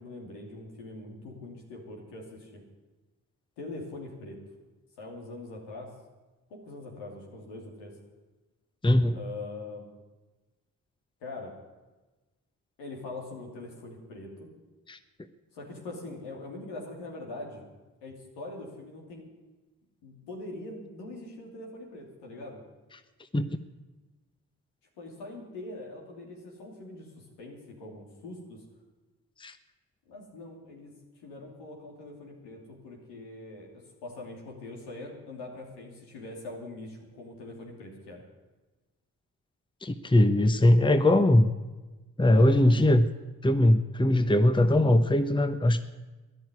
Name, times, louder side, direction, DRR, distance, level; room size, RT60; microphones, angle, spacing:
voice 1, 0.0-2.6 3.6-4.4 5.0-5.9 6.5-8.0 9.1-9.8 11.2-11.5 12.8-14.5 15.5-17.6 18.0-19.3 20.0-22.6 25.0-28.6 30.1-30.9 31.2-33.7 34.0-38.2 42.3-42.8, left 2 dB, 90° left, 0 dB, 3.0 m, -42 dB
voice 2, 8.8-9.2 14.9-15.0 23.3-23.4 29.4-29.6 39.8-41.5 42.2-43.1 43.4-45.8, left 1 dB, 10° left, 10 dB, 1.0 m, -21 dB
13.5 x 10.5 x 9.7 m, 1.2 s
hypercardioid pair, 40°, 41 cm